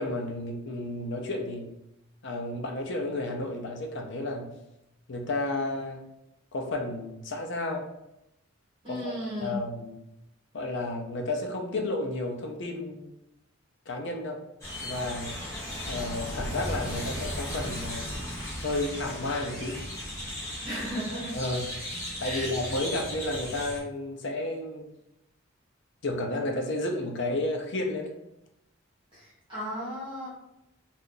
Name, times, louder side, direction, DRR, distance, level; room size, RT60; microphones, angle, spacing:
voice 1, 0.0-1.7 2.2-4.6 5.1-6.0 6.5-7.9 8.9-10.0 10.5-13.2 13.9-14.4 14.8-15.4 15.9-18.2 18.6-19.8 21.3-24.9 26.0-28.1, left 2 dB, 60° left, 2 dB, 0.6 m, -32 dB
voice 2, 8.8-9.5 20.6-21.3 22.2-22.5 29.1-29.2 29.5-30.3, equal, 25° right, -9 dB, 1.1 m, -34 dB
sound 1, 14.6-23.8, equal, 15° left, 1.0 m, -36 dB
2.7 x 2.4 x 3.8 m, 0.87 s
head